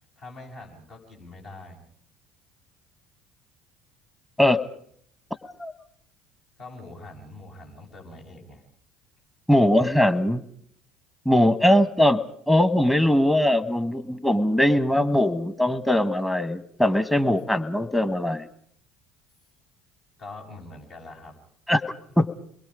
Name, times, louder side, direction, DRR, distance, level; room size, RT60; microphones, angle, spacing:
voice 1, 0.2-1.8 6.6-8.6 20.2-21.3, left 2 dB, 55° left, -1 dB, 7.7 m, -43 dB
voice 2, 9.5-10.4 11.2-18.5 21.7-22.4, left 1 dB, 5° left, 15 dB, 1.6 m, -21 dB
28.0 x 21.5 x 5.1 m, 0.63 s
hypercardioid pair, 60°, 0 cm